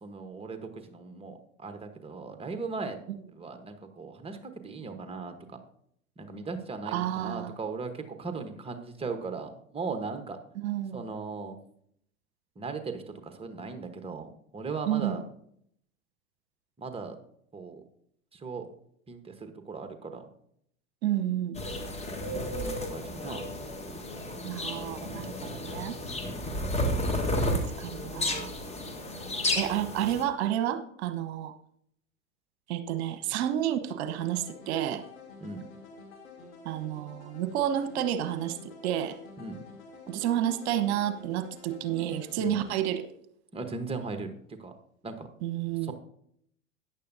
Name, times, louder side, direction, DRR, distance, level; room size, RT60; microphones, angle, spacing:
voice 1, 0.0-3.0 3.3-5.6 6.2-10.4 10.9-11.6 12.6-15.2 16.8-17.2 17.5-17.8 18.3-18.7 19.1-20.2 22.2-23.5 26.2-26.6 27.2-27.3 35.4-35.6 39.4-39.6 42.3-42.6 43.5-44.3 44.6-44.7 45.0-45.3 45.8-45.9, right 4 dB, 15° right, 7 dB, 1.2 m, -38 dB
voice 2, 6.9-7.5 10.6-11.0 14.9-15.2 21.0-21.6 24.4-26.0 27.8-28.5 29.5-31.5 32.7-35.0 36.6-38.6 38.8-39.2 40.1-43.1 45.4-45.9, right 11 dB, 50° right, 11 dB, 1.1 m, -30 dB
sound 1, 21.5-30.2, left 1 dB, 15° left, 1.5 m, -32 dB
sound 2, 34.2-42.9, left 3 dB, 75° left, 3.0 m, -49 dB
13.5 x 9.9 x 2.7 m, 0.69 s
figure-of-eight pair, 90°, 41 cm